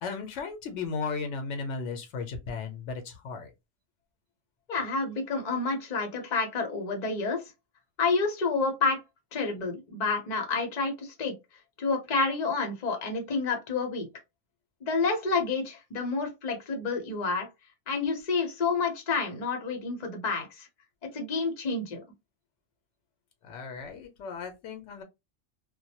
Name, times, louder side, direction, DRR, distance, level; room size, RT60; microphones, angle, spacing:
voice 1, 0.0-3.5 23.4-25.0, left 5 dB, 80° left, 0.9 m, -35 dB
voice 2, 4.7-7.4 8.0-9.0 9.3-11.3 11.8-14.1 14.8-17.5 17.9-20.7 21.0-22.0, left 4 dB, 40° left, 0.8 m, -29 dB
2.2 x 2.0 x 2.8 m
omnidirectional pair, 1.2 m